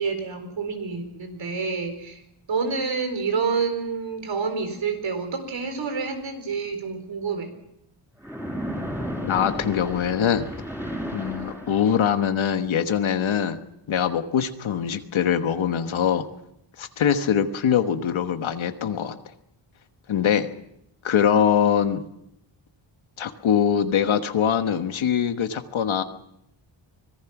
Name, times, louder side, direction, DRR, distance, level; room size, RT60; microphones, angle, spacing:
voice 1, 0.0-2.2 2.5-7.5, right 5 dB, 65° right, 7 dB, 4.4 m, -28 dB
Splash splatter, 8.2-12.2, equal, 5° right, 5.4 m, -33 dB
voice 2, 9.2-10.4 11.1-13.6 13.9-16.2 16.8-19.2 20.1-20.5 21.0-22.0 23.2-26.0, left 8 dB, 70° left, 8 dB, 1.4 m, -23 dB
25.0 x 19.0 x 6.0 m, 0.80 s
wide cardioid pair, 125°, 49 cm